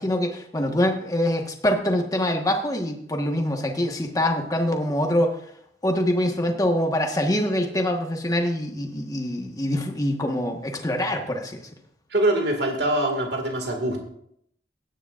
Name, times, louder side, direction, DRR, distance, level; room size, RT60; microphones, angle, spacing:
voice 1, 0.0-5.3 5.8-11.6, left 1 dB, 20° left, 3 dB, 1.3 m, -24 dB
voice 2, 12.1-14.0, right 1 dB, 70° right, 3 dB, 2.1 m, -23 dB
16.5 x 10.0 x 2.5 m, 0.70 s
head